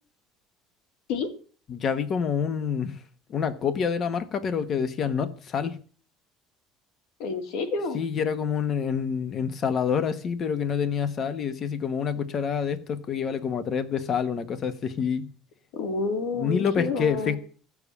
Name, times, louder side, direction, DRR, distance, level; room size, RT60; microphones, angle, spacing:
voice 1, 1.7-3.0 3.3-5.8 7.9-15.3 16.4-17.4, left 7 dB, 35° left, 1.0 m, -27 dB
voice 2, 7.2-8.0 15.7-17.4, left 4 dB, 75° left, 2.4 m, -29 dB
15.0 x 7.2 x 8.3 m
cardioid pair, 165°, 0 cm